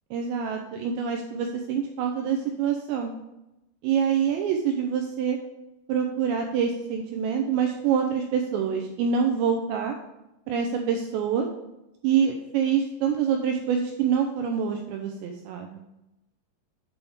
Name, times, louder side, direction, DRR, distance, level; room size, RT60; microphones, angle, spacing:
voice 1, 0.1-3.1 3.8-5.4 5.9-10.0 10.5-11.5 12.0-15.8, right 7 dB, 85° right, 3 dB, 2.5 m, -26 dB
8.3 x 3.4 x 5.3 m, 0.94 s
omnidirectional pair, 5.6 m